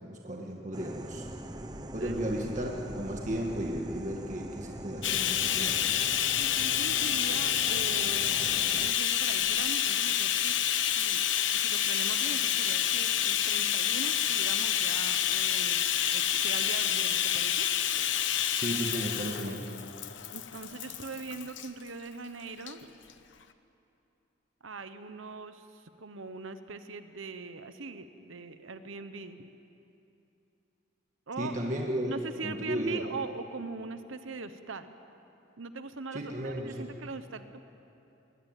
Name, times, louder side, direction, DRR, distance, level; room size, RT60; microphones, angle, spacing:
voice 1, 0.0-1.3 1.9-5.9 18.6-19.7 31.4-32.2 32.4-33.0 36.1-36.9, right 1 dB, 35° right, 0 dB, 1.7 m, -34 dB
sound 1, 0.7-8.9, right 1 dB, 20° right, 0.8 m, -43 dB
Wind, 1.0-6.9, equal, 85° left, 5.0 m, -50 dB
Bathtub (filling or washing), 5.0-21.7 22.6-22.7 23.1-23.2, left 10 dB, 65° left, 1.0 m, -28 dB
voice 2, 6.4-10.6 10.9-11.3 11.5-15.8 16.1-17.7 20.3-23.0 24.6-29.5 31.3-31.6 32.1-34.9 35.6-37.6, right 3 dB, 80° right, 10 dB, 1.0 m, -41 dB
21.0 x 21.0 x 9.1 m, 2.8 s
head